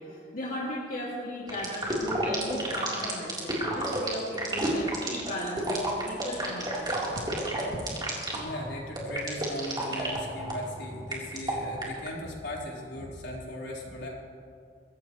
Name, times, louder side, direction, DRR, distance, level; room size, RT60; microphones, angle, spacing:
voice 1, 0.0-6.9, left 1 dB, 55° left, -6 dB, 2.4 m, -37 dB
sound 1, 1.5-12.1, right 2 dB, 25° right, 3.6 m, -31 dB
voice 2, 8.3-14.1, left 1 dB, 75° left, -4 dB, 4.2 m, -38 dB
23.0 x 16.5 x 3.1 m, 2.5 s
head